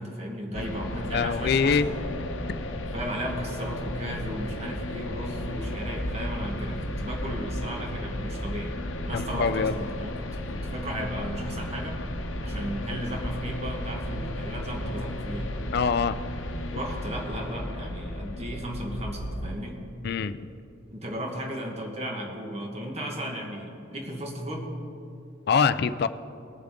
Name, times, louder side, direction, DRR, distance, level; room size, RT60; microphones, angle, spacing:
voice 1, 0.0-2.0 2.9-8.7 9.1-12.0 12.4-15.5 16.7-19.8 20.9-24.7, equal, 35° right, 0 dB, 1.6 m, -35 dB
sound 1, 0.5-19.5, left 1 dB, 90° left, 0.9 m, -34 dB
voice 2, 1.1-1.9 9.1-9.7 15.7-16.2 20.0-20.5 25.5-26.1, left 5 dB, 55° left, 13 dB, 0.4 m, -24 dB
20.0 x 7.1 x 3.8 m, 2.7 s
head